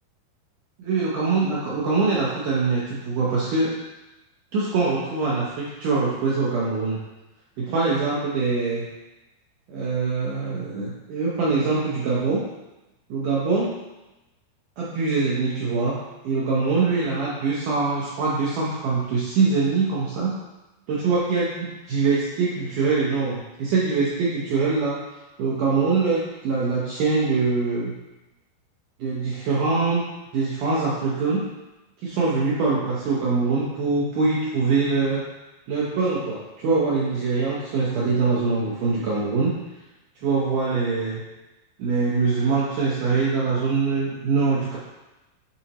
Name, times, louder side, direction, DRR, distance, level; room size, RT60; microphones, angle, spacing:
voice 1, 0.8-3.7 4.5-7.0 7.6-8.9 9.7-12.4 13.1-13.7 14.8-16.0 16.2-20.3 20.9-25.0 25.4-27.9 29.0-30.0 30.3-31.4 32.0-35.2 35.7-39.5 40.2-41.2 41.8-44.8, right 4 dB, 75° right, -6 dB, 1.9 m, -23 dB
8.7 x 4.1 x 2.9 m, 1.0 s
omnidirectional pair, 4.7 m